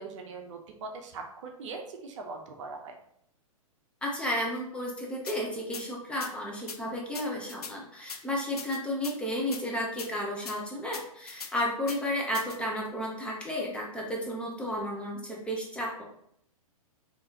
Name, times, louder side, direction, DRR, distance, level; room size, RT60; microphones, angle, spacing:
voice 1, 0.0-2.9, right 4 dB, 55° right, 3 dB, 0.7 m, -41 dB
voice 2, 4.0-16.0, equal, 5° left, -3 dB, 0.7 m, -33 dB
sound 1, 5.3-5.4 5.7-5.8 6.2-6.3 6.7-6.8 7.1-7.7 8.1-8.2 8.6-9.2 9.5-9.6 10.0-10.1 10.5-10.6 10.9-11.5 11.9-12.0 12.3-12.6, left 5 dB, 90° left, 0.5 m, -40 dB
3.8 x 2.8 x 2.8 m, 0.71 s
figure-of-eight pair, 115°, 19 cm